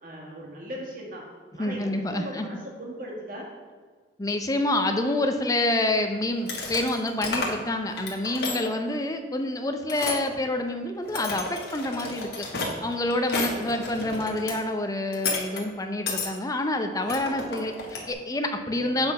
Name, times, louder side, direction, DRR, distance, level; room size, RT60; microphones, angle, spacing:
voice 1, 0.0-1.3 1.5-3.5 13.3-13.7 18.7-19.1, equal, 50° right, -2 dB, 1.8 m, -39 dB
voice 2, 1.6-2.5 4.2-12.5 12.8-19.1, left 1 dB, 20° left, 5 dB, 0.5 m, -27 dB
sound 1, 6.4-7.7 7.9-8.7 9.9-10.2 10.9-14.5 15.1-15.6 16.1-16.3 17.1-18.1, left 3 dB, 60° left, 1.5 m, -32 dB
7.8 x 4.1 x 5.3 m, 1.6 s
head